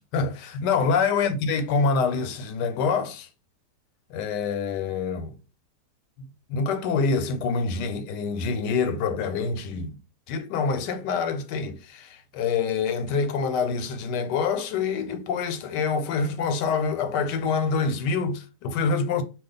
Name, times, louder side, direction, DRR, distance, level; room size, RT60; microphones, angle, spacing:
voice 1, 0.1-3.3 4.1-5.4 6.5-9.9 10.3-19.2, left 5 dB, 90° left, 1.2 m, -26 dB
2.5 x 2.3 x 3.8 m
omnidirectional pair, 1.8 m